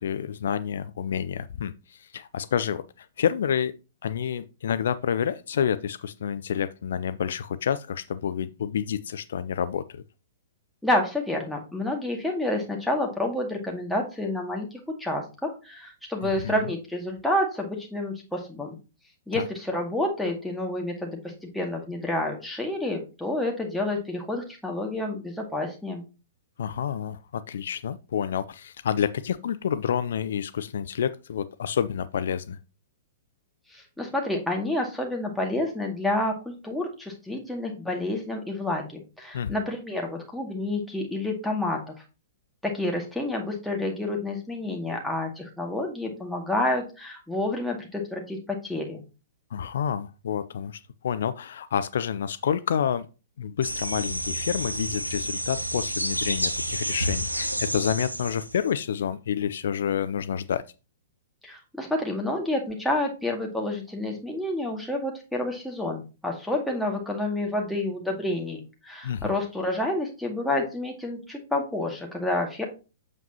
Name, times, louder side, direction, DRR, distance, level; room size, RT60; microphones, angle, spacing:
voice 1, 0.0-3.7 4.0-10.0 16.2-16.7 19.3-19.4 26.6-32.6 39.3-39.6 49.5-53.1 53.4-60.6 69.0-69.3, left 8 dB, 55° left, 0.4 m, -29 dB
voice 2, 10.8-18.7 19.3-26.0 33.7-41.9 42.6-49.0 61.4-72.6, left 1 dB, ahead, 2.0 m, -29 dB
sound 1, 53.6-58.7, equal, 85° right, 1.0 m, -30 dB
8.0 x 7.1 x 2.8 m
figure-of-eight pair, 110°, 0 cm